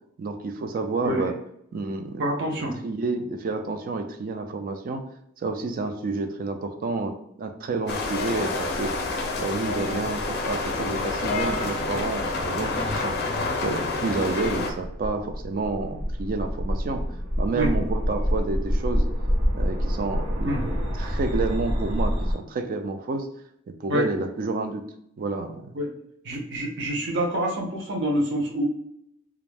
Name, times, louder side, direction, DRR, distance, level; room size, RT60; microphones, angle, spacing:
voice 1, 0.2-1.4 1.7-2.2 2.8-5.0 5.4-9.0 9.4-13.1 13.6-17.0 17.4-19.1 19.5-23.3 23.8-24.8 25.2-25.8, right 3 dB, 45° right, 6 dB, 0.3 m, -29 dB
voice 2, 2.2-2.7 12.7-12.9 13.2-13.5 17.5-17.7 20.4-20.6 23.9-24.1 25.7-25.9 26.2-28.6, equal, 60° right, 0 dB, 0.7 m, -27 dB
sound 1, 7.9-14.7, left 3 dB, 55° left, 0.5 m, -28 dB
sound 2, 14.4-22.3, equal, 75° right, 1.3 m, -27 dB
2.4 x 2.0 x 3.3 m, 0.74 s
head